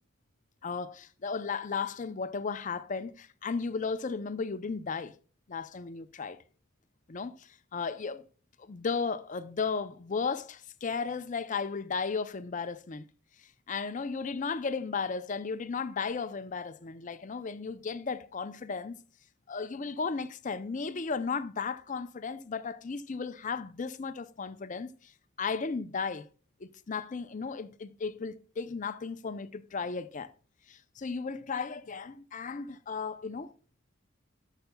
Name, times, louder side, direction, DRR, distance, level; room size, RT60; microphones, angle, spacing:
voice 1, 0.6-5.1 5.5-6.4 7.1-8.3 8.6-13.0 13.7-18.9 19.5-25.1 25.4-26.2 26.6-30.3 30.7-33.5, left 5 dB, 40° left, 0.5 m, -35 dB
11.5 x 6.7 x 2.3 m
head